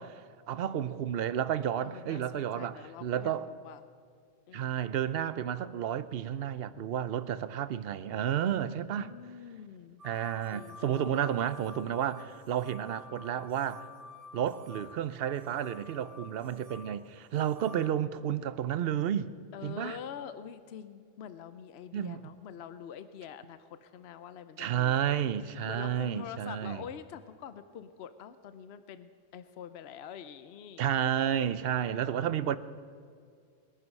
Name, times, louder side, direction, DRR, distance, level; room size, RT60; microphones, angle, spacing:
voice 1, 0.0-3.5 4.5-9.1 10.0-13.9 14.3-19.3 19.6-20.0 21.9-22.3 24.6-26.8 30.8-32.6, right 10 dB, 65° right, 0.8 m, -31 dB
voice 2, 1.8-3.8 4.5-4.8 8.5-10.0 10.4-11.3 17.7-17.8 19.5-24.9 25.6-30.8 31.7-32.3, left 8 dB, 70° left, 0.9 m, -46 dB
sound 1, 10.0-17.9, left 4 dB, 85° right, 1.4 m, -51 dB
21.5 x 11.0 x 5.4 m
omnidirectional pair, 1.2 m